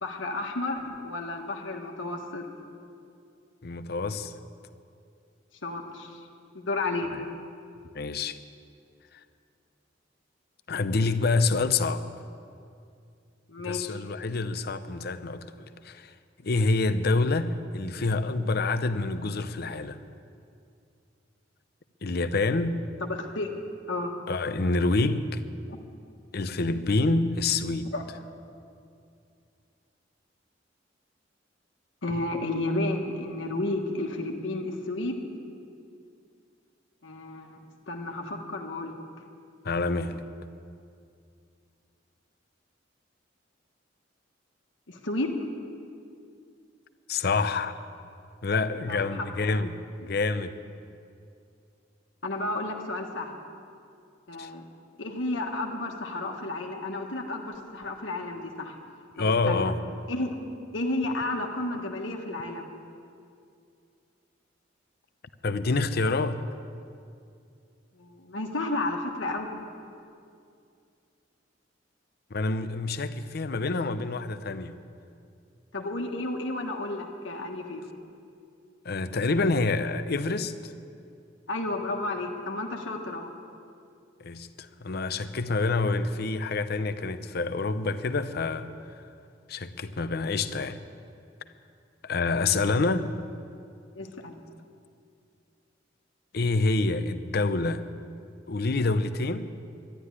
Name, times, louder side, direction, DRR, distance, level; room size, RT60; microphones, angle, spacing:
voice 1, 0.0-2.5 5.6-6.2 6.5-7.1 13.5-14.0 23.0-23.5 23.9-24.1 25.7-25.8 27.9-28.0 32.0-35.2 37.0-39.0 44.9-45.3 48.9-49.5 52.2-53.3 54.3-54.7 55.0-58.8 59.2-59.7 60.1-60.4 60.7-62.7 68.0-69.6 75.7-77.8 81.5-83.3 93.9-94.3, left 2 dB, 85° left, 1 dB, 1.5 m, -32 dB
voice 2, 3.6-4.3 7.1-7.2 7.9-8.4 10.7-12.0 13.6-16.1 16.4-20.0 22.0-22.8 24.3-25.4 26.3-27.9 39.6-40.2 47.1-47.8 48.4-50.5 54.4-54.5 59.2-59.8 65.4-66.4 72.3-74.8 78.8-80.7 84.2-88.7 89.5-90.8 92.0-93.1 96.3-97.8 98.5-99.5, left 3 dB, 55° left, 11 dB, 0.7 m, -27 dB
12.0 x 11.5 x 9.8 m, 2.4 s
head